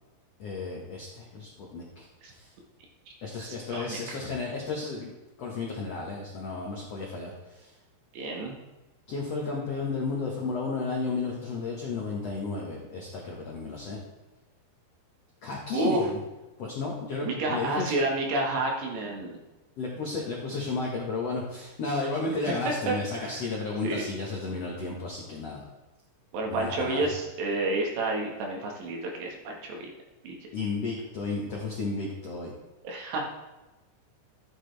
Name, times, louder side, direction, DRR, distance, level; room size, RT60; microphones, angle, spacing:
voice 1, 0.4-2.5 3.2-5.1 5.4-7.7 9.1-14.0 15.4-16.2 16.6-17.9 19.8-25.6 26.5-27.0 30.5-32.5, left 3 dB, 80° left, -2 dB, 1.4 m, -33 dB
voice 2, 3.4-4.0 8.1-8.6 15.7-16.1 17.2-19.4 22.7-23.4 23.8-24.1 26.3-29.9 30.2-30.4 32.8-33.2, right 2 dB, 70° right, 0 dB, 3.7 m, -30 dB
13.0 x 8.7 x 3.4 m, 1.1 s
omnidirectional pair, 5.3 m